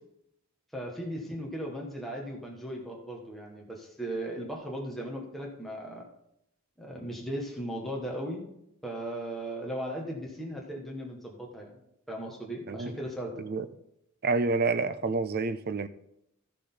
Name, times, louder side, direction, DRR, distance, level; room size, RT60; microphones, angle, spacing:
voice 1, 0.7-6.0 6.8-8.4 8.8-11.8 12.1-13.4, right 1 dB, ahead, 1.7 m, -37 dB
voice 2, 14.2-15.9, right 3 dB, 45° right, 0.5 m, -28 dB
13.5 x 6.5 x 4.0 m
head